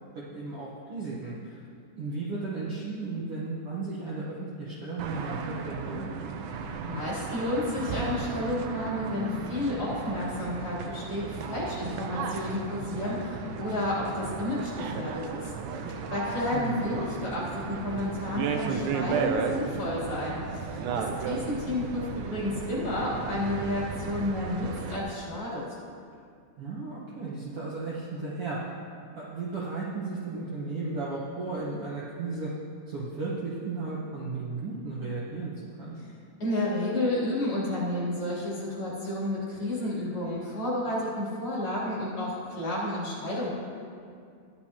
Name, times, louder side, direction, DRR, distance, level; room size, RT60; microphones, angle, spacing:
voice 1, 0.1-1.7 2.0-6.1 16.5-17.1 26.6-28.6 29.1-32.5 32.9-35.5 35.8-36.0, right 3 dB, 60° right, -6 dB, 1.6 m, -35 dB
sound 1, 5.0-25.0, right 5 dB, 75° right, 2.0 m, -34 dB
voice 2, 6.8-25.6 36.4-43.5, left 1 dB, 40° left, -8 dB, 3.8 m, -31 dB
14.0 x 10.5 x 2.9 m, 2.3 s
omnidirectional pair, 4.0 m